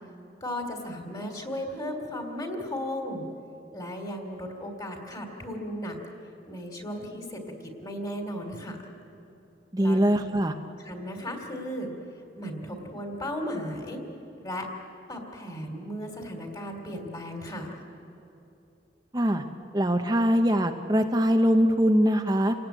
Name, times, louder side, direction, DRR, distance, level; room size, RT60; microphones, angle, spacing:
voice 1, 0.4-3.2 3.7-6.0 6.5-8.8 9.8-10.0 10.8-11.9 12.4-14.0 14.4-14.7 15.1-17.7, equal, 20° left, 4 dB, 3.0 m, -35 dB
voice 2, 9.7-10.5 19.1-19.4 19.7-22.5, equal, 20° right, 5 dB, 0.9 m, -22 dB
29.0 x 18.0 x 9.1 m, 2.8 s
head